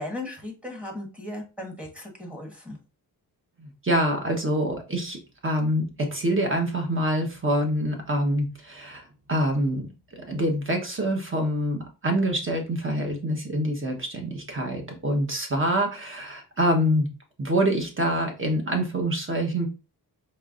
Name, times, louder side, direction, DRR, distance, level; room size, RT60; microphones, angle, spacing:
voice 1, 0.0-2.8, left 1 dB, 5° right, 1 dB, 1.3 m, -36 dB
voice 2, 3.6-5.2 5.4-9.9 10.2-17.1 17.4-19.7, equal, 30° right, 2 dB, 1.2 m, -26 dB
4.5 x 3.2 x 2.5 m, 0.31 s
wide cardioid pair, 100°, 39 cm